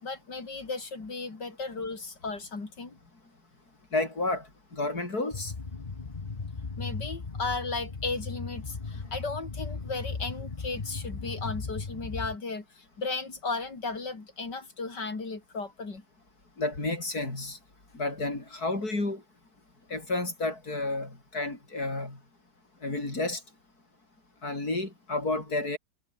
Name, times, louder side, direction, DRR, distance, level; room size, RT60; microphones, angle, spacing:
voice 1, 0.0-3.0 6.0-6.1 6.8-16.0, left 3 dB, 80° left, 4.6 m, -35 dB
voice 2, 3.9-5.5 16.6-17.6 17.9-19.2 19.9-22.2 22.8-23.4 24.4-25.8, left 2 dB, 60° left, 6.8 m, -31 dB
sound 1, 5.3-12.4, left 4 dB, 25° left, 1.4 m, -37 dB
omnidirectional pair, 1.8 m